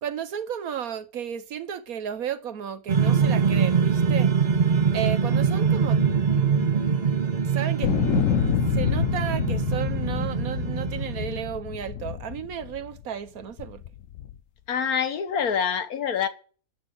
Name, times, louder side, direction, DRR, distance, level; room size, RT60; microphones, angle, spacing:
voice 1, 0.0-4.3 4.9-6.0 7.4-7.9 8.4-13.8, right 8 dB, 75° right, 1.4 m, -33 dB
sound 1, 2.9-11.5, right 6 dB, 35° right, 0.8 m, -23 dB
sound 2, 7.8-13.0 13.6-14.4, left 10 dB, 65° left, 1.0 m, -27 dB
voice 2, 14.7-16.3, left 7 dB, 80° left, 1.6 m, -26 dB
13.0 x 8.2 x 6.4 m
omnidirectional pair, 1.5 m